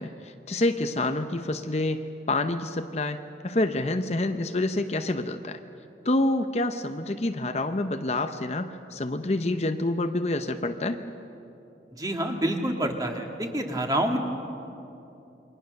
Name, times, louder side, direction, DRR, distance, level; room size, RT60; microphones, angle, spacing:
voice 1, 0.0-5.6 6.0-11.0, left 2 dB, 35° left, 7 dB, 0.7 m, -27 dB
voice 2, 12.0-14.2, right 1 dB, 20° right, 3 dB, 1.9 m, -27 dB
28.0 x 23.0 x 6.5 m, 2.8 s
head